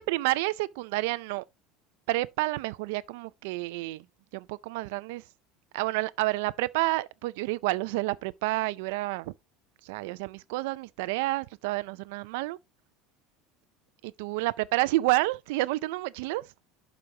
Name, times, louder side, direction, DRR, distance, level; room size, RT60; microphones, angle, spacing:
voice 1, 0.0-1.5 2.1-4.0 4.3-5.2 5.7-9.3 9.8-12.6 14.0-16.5, right 20 dB, 75° right, 0.4 m, -29 dB
11.5 x 4.9 x 2.8 m
cardioid pair, 170°, 0 cm